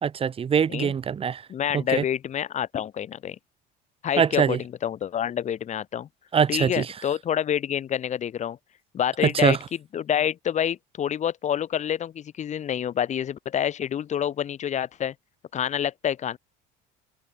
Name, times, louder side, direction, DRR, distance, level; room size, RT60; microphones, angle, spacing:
voice 1, 0.0-1.4 1.7-2.0 4.2-4.6 6.3-6.9 9.2-9.6, right 7 dB, 30° right, 2.8 m, -23 dB
voice 2, 1.5-3.4 4.0-6.1 6.5-8.6 8.9-9.6 9.9-15.1 15.5-16.4, left 9 dB, 40° left, 4.4 m, -27 dB
cardioid pair, 130°, 19 cm